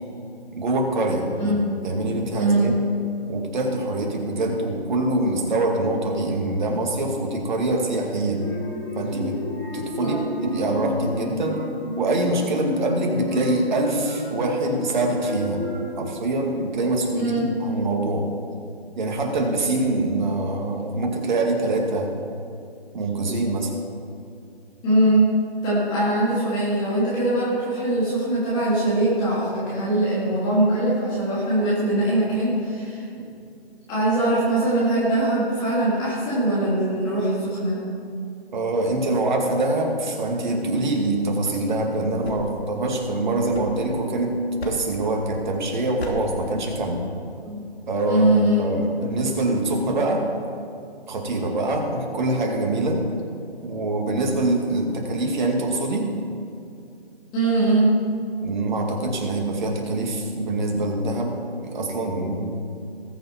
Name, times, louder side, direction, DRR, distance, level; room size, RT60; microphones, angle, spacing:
voice 1, 0.6-1.6 1.8-2.7 3.3-8.5 9.0-9.4 9.7-11.6 12.0-15.6 16.0-18.3 19.0-22.2 22.9-23.7 38.5-47.0 47.9-48.3 48.6-50.3 51.1-53.0 53.6-56.2 58.4-62.6, right 2 dB, 45° right, 1 dB, 2.3 m, -24 dB
voice 2, 1.4-1.8 2.4-2.7 10.0-10.2 17.1-17.5 24.8-25.3 25.6-33.1 33.9-37.8 47.4-47.6 48.1-48.7 57.3-57.9, right 1 dB, 15° left, -10 dB, 2.6 m, -22 dB
sound 1, 8.4-16.0, left 2 dB, 5° right, 0.4 m, -31 dB
sound 2, 42.2-44.2 44.6-45.1 46.0-46.4, left 1 dB, 75° left, 2.9 m, -36 dB
19.5 x 7.0 x 4.6 m, 2.6 s
figure-of-eight pair, 155°, 32 cm